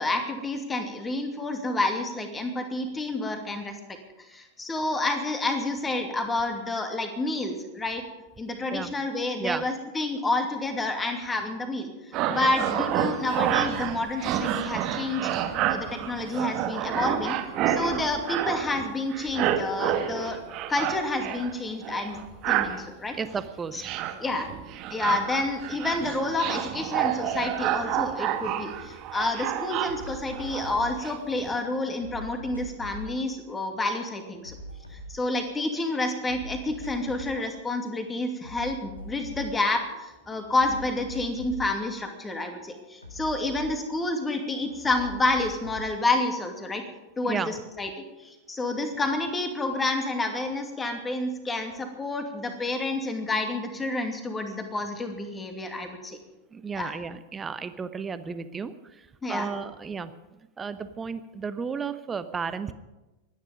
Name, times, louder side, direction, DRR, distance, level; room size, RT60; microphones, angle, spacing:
voice 1, 0.0-3.7 4.3-8.0 8.4-11.9 12.3-15.3 15.7-17.4 17.7-20.4 20.7-22.2 22.4-23.2 23.7-23.8 24.2-24.5 24.9-34.5 34.9-46.8 47.2-47.9 48.2-56.2 56.8-56.9 59.2-59.5, left 2 dB, 15° left, 5 dB, 2.5 m, -29 dB
sound 1, 12.1-18.9 19.1-21.5 21.8-22.8 23.3-23.5 23.8-31.2 31.4-31.6, right 10 dB, 35° right, 1.5 m, -29 dB
voice 2, 23.1-24.0 47.2-47.5 56.5-60.1 60.6-62.7, right 5 dB, 20° right, 12 dB, 1.0 m, -33 dB
sound 2, 28.8-28.9 29.2-31.4 31.7-35.7 36.0-37.5 37.8-40.0 40.3-44.3 44.6-45.9, right 1 dB, 85° left, 2.2 m, -43 dB
24.5 x 10.0 x 5.2 m, 1.1 s
figure-of-eight pair, 90°, 0 cm